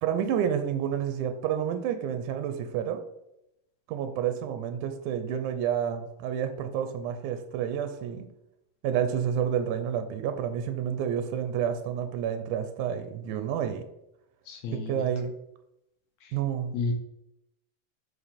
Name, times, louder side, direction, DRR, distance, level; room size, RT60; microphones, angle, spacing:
voice 1, 0.0-3.0 3.9-8.3 8.8-13.8 14.7-15.3 16.3-16.8, right 9 dB, 85° right, 8 dB, 2.1 m, -29 dB
voice 2, 14.5-15.1 16.2-16.4 16.7-16.9, left 3 dB, 70° left, 2 dB, 2.1 m, -32 dB
7.9 x 5.0 x 4.2 m, 0.83 s
omnidirectional pair, 3.5 m